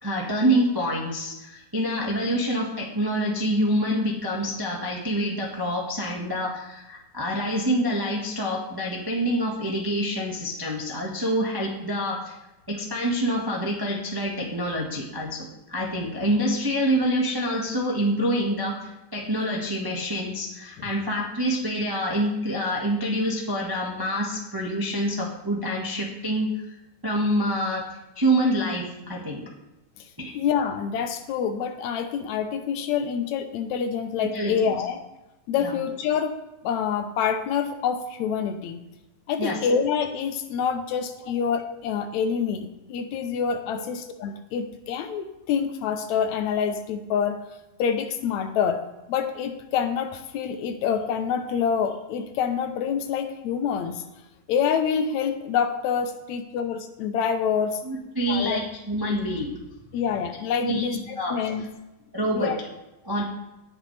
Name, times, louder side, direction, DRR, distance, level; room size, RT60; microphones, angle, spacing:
voice 1, 0.0-12.3 12.7-26.5 27.0-27.8 28.1-29.4 30.2-30.4 34.3-34.6 35.6-35.8 39.4-39.6 57.8-59.5 60.6-61.3 62.1-62.5 63.0-63.2, equal, 25° right, -2 dB, 0.5 m, -26 dB
voice 2, 30.3-35.0 35.5-36.4 36.6-38.8 39.3-47.4 47.8-48.8 49.1-54.0 54.5-57.8 58.3-58.6 59.9-61.7 62.3-62.6, left 7 dB, 75° left, 8 dB, 2.1 m, -26 dB
18.0 x 7.2 x 3.3 m, 0.97 s
omnidirectional pair, 3.3 m